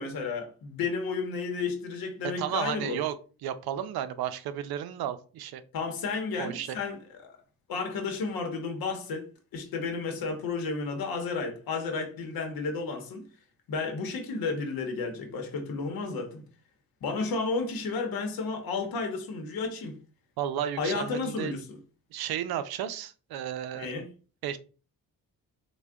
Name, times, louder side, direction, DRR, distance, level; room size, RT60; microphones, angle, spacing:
voice 1, 0.0-3.0 5.7-7.4 7.7-9.2 9.5-13.2 13.7-16.4 17.0-20.0 20.8-21.8 23.7-24.1, left 4 dB, 75° left, 0.8 m, -32 dB
voice 2, 2.2-3.2 3.4-5.6 6.4-6.8 20.4-21.5 22.1-23.9 24.4-24.6, right 10 dB, 90° right, 0.5 m, -33 dB
3.6 x 2.2 x 3.4 m
cardioid pair, 120°, 36 cm